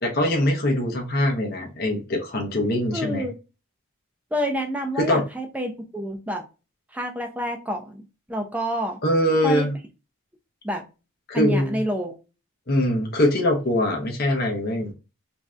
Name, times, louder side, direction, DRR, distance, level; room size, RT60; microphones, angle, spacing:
voice 1, 0.0-3.3 5.0-5.2 9.0-9.7 11.3-11.8 12.7-14.9, left 1 dB, 45° left, 1 dB, 0.7 m, -22 dB
voice 2, 2.9-3.4 4.3-6.4 6.9-9.0 9.4-9.7 10.6-10.9 11.3-12.2, equal, 5° right, 4 dB, 0.4 m, -28 dB
3.2 x 2.6 x 2.3 m, 0.30 s
head